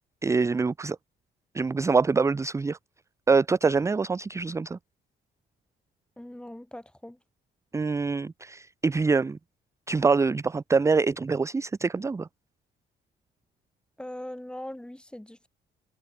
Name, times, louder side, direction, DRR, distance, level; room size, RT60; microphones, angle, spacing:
voice 1, 0.2-1.0 1.5-2.8 3.3-4.8 7.7-9.4 9.9-12.3, right 4 dB, 15° right, 0.4 m, -25 dB
voice 2, 6.2-7.2 14.0-15.5, left 1 dB, 5° left, 0.9 m, -40 dB
cardioid pair, 90°, 20 cm